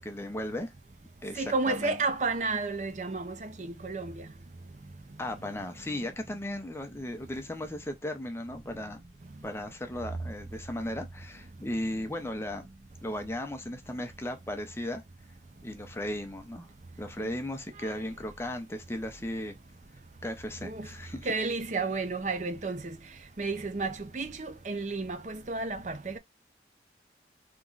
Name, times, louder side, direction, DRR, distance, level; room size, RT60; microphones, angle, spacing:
voice 1, 0.1-0.7 1.2-2.0 5.2-9.0 9.4-12.7 13.0-15.0 15.6-16.7 17.0-19.5 20.2-21.3, left 1 dB, 15° left, 0.7 m, -36 dB
voice 2, 1.4-4.1 17.2-17.3 17.8-17.9 20.6-20.9 21.3-23.0 23.4-26.2, right 3 dB, 40° right, 0.6 m, -32 dB
3.6 x 3.0 x 3.9 m
head